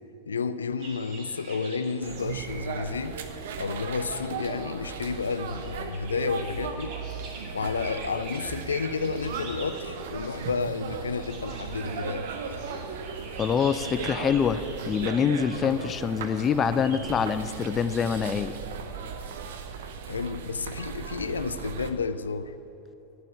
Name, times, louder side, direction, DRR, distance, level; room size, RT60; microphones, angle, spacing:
voice 1, 0.3-3.2 3.6-7.0 7.5-12.3 20.1-22.5, left 5 dB, 70° left, 0.5 m, -31 dB
sound 1, 0.8-17.3, right 3 dB, 40° right, 2.3 m, -45 dB
sound 2, 2.0-21.9, right 6 dB, 55° right, 0.9 m, -37 dB
voice 2, 13.4-18.6, left 7 dB, 25° left, 0.5 m, -25 dB
11.0 x 7.4 x 8.6 m
figure-of-eight pair, 90°, 0 cm